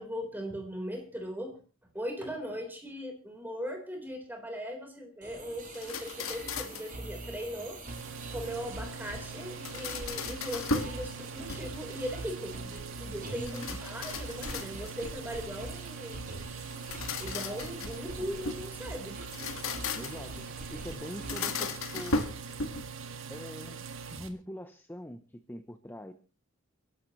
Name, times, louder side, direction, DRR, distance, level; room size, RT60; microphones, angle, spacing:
voice 1, 0.0-1.6 1.9-7.8 8.2-16.2 17.2-19.2, equal, 10° right, 2 dB, 4.1 m, -39 dB
sound 1, 5.2-21.5, right 1 dB, 40° right, 6.8 m, -45 dB
sound 2, 5.7-7.0 9.4-11.0 11.4-12.0 13.5-15.1 16.7-18.7 19.2-20.3 21.1-23.0, left 3 dB, 85° left, 1.7 m, -36 dB
sound 3, 7.9-24.3, right 5 dB, 70° right, 1.8 m, -43 dB
voice 2, 13.4-13.8 20.0-22.2 23.3-23.8 24.1-26.1, equal, 10° left, 9 dB, 0.7 m, -43 dB
30.0 x 11.5 x 3.1 m, 0.35 s
head